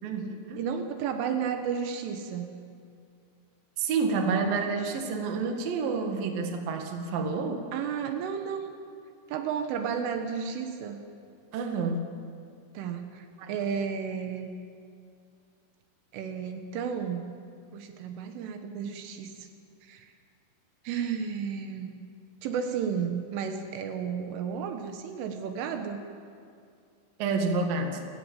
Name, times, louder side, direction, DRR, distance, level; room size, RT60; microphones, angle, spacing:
voice 1, 0.0-0.6 3.8-7.7 11.5-12.0 13.4-13.5 27.2-28.0, right 4 dB, 55° right, 4 dB, 3.3 m, -29 dB
voice 2, 0.5-2.5 7.7-8.7 9.3-11.0 12.8-14.5 16.1-17.3 17.7-19.5 19.8-20.1 20.9-21.9 22.4-26.0, right 7 dB, 80° right, 6 dB, 3.9 m, -32 dB
29.0 x 17.5 x 7.5 m, 2.3 s
omnidirectional pair, 5.7 m